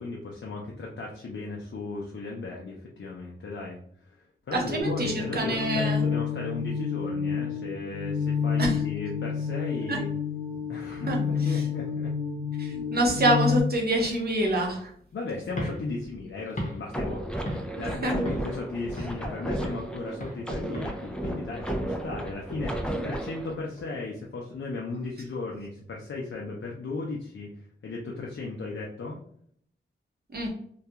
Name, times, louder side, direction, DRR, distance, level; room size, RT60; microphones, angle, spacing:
voice 1, 0.0-4.1 4.5-10.1 10.7-12.1 12.9-13.0 15.1-27.5 27.8-29.2, left 3 dB, 70° left, -2 dB, 0.5 m, -36 dB
voice 2, 4.5-6.0 8.6-8.7 9.9-10.0 11.1-11.6 12.6-14.9 18.0-18.1 30.3-30.5, right 1 dB, 50° right, -1 dB, 0.8 m, -26 dB
sound 1, 4.8-13.6, left 6 dB, 75° right, 0.9 m, -29 dB
sound 2, 15.5-17.9 18.3-18.6 19.0-19.9 20.2-20.5 20.7-23.9, equal, 40° left, 0.8 m, -38 dB
sound 3, 16.9-23.5, right 1 dB, 5° left, 0.4 m, -33 dB
2.3 x 2.2 x 2.8 m, 0.63 s
wide cardioid pair, 75°, 21 cm